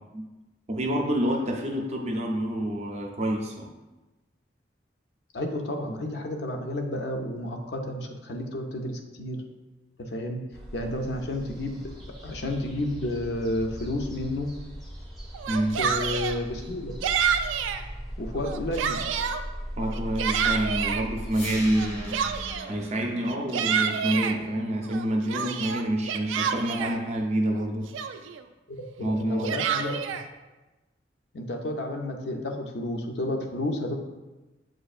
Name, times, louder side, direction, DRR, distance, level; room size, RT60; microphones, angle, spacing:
voice 1, 0.7-3.7 15.5-15.8 19.8-22.2 22.7-28.2 29.0-29.6, right 1 dB, 35° right, 1 dB, 0.5 m, -28 dB
voice 2, 5.3-9.4 10.0-10.4 10.7-11.9 12.2-14.5 15.8-16.9 18.2-19.0 29.0-30.0 31.3-33.9, left 1 dB, 60° left, 3 dB, 0.5 m, -31 dB
sound 1, 10.5-22.6, equal, ahead, 0.6 m, -39 dB
Yell, 15.3-16.4 17.0-17.8 18.3-19.4 19.9-21.0 21.8-22.7 23.3-24.4 24.9-27.0 27.6-27.7 27.9-28.4 29.2-30.2, right 7 dB, 85° right, 0.3 m, -28 dB
sound 2, 21.3-27.3, left 1 dB, 85° left, 0.9 m, -44 dB
7.3 x 2.5 x 2.4 m, 1.1 s
head